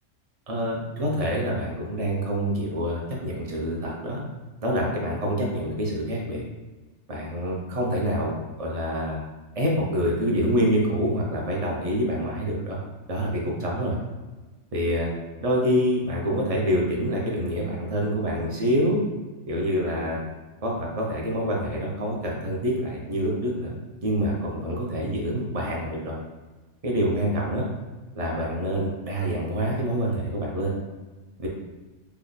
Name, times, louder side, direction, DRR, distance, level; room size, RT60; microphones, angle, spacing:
voice 1, 0.5-4.2 4.6-6.4 7.1-9.2 9.5-12.8 13.1-14.0 14.7-15.1 15.4-19.0 19.5-20.2 20.6-23.7 24.0-26.2 26.8-27.7 28.1-30.7 31.4-31.5, equal, 40° right, -2 dB, 0.5 m, -26 dB
3.3 x 2.1 x 3.8 m, 1.2 s
omnidirectional pair, 1.3 m